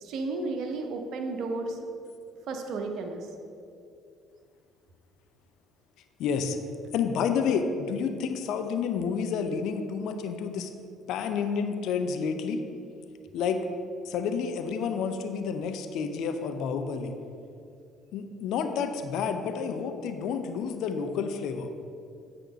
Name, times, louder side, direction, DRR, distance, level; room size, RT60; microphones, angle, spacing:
voice 1, 0.0-1.9 2.5-3.3, right 3 dB, 55° right, 4 dB, 0.9 m, -33 dB
voice 2, 6.2-6.6 6.9-10.7 11.1-12.6 13.3-13.6 14.1-17.1 18.1-21.7, left 6 dB, 60° left, 7 dB, 0.6 m, -29 dB
8.8 x 4.5 x 6.2 m, 2.5 s
figure-of-eight pair, 50°, 0 cm